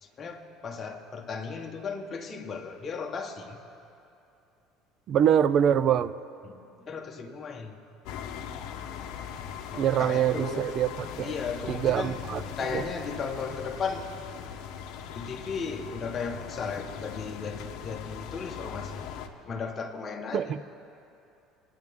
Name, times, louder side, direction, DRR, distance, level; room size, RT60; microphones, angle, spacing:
voice 1, 0.0-3.6 6.4-7.8 9.7-10.6 11.2-12.2 12.6-14.1 15.1-19.0 19.4-20.7, left 5 dB, 25° left, 2 dB, 1.0 m, -36 dB
voice 2, 5.1-6.1 9.7-10.9 11.2-11.3 11.7-12.4 12.7-12.8 20.3-20.6, right 9 dB, 40° right, 15 dB, 0.4 m, -24 dB
sound 1, 8.1-19.3, left 8 dB, 65° left, 0.8 m, -40 dB
22.5 x 9.5 x 3.6 m, 2.7 s
cardioid pair, 155°, 0 cm